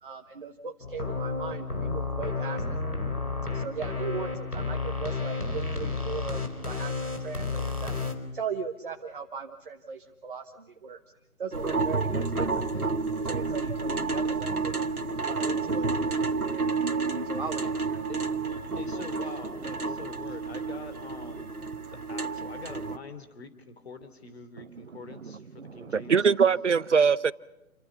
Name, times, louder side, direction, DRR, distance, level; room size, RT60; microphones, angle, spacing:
voice 1, 0.0-2.8 3.5-7.9 8.3-11.0 11.4-12.9 13.2-14.8 15.2-18.0, right 5 dB, 35° right, 1.4 m, -38 dB
sound 1, 0.8-8.1, left 4 dB, 90° left, 4.6 m, -31 dB
sound 2, 11.5-23.0, right 4 dB, 80° right, 1.8 m, -30 dB
voice 2, 18.7-21.5 21.9-26.2, left 4 dB, 45° left, 3.1 m, -44 dB
voice 3, 25.6-27.3, right 6 dB, 55° right, 0.8 m, -23 dB
29.0 x 24.5 x 5.7 m
figure-of-eight pair, 150°, 43 cm